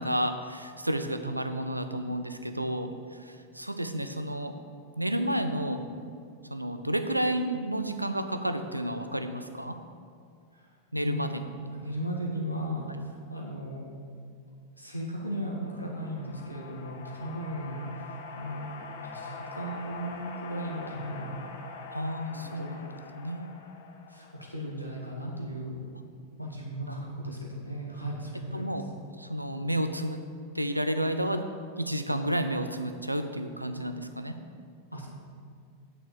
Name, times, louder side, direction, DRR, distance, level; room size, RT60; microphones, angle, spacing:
voice 1, 0.0-4.5 5.0-5.9 6.5-9.8 10.9-11.4 21.9-23.5 26.9-27.0 27.2-27.3 28.5-28.8 29.2-30.2 30.5-31.5 31.8-34.4, right 1 dB, 85° right, 8 dB, 0.6 m, -31 dB
voice 2, 11.7-13.9 14.8-18.7 19.0-21.4 22.3-22.7 24.1-25.8 26.4-28.7 34.9-35.1, equal, 90° left, -2 dB, 1.8 m, -36 dB
sound 1, 15.3-24.9, left 4 dB, 55° left, 1.0 m, -44 dB
8.9 x 6.6 x 7.0 m, 2.2 s
figure-of-eight pair, 90°, 0 cm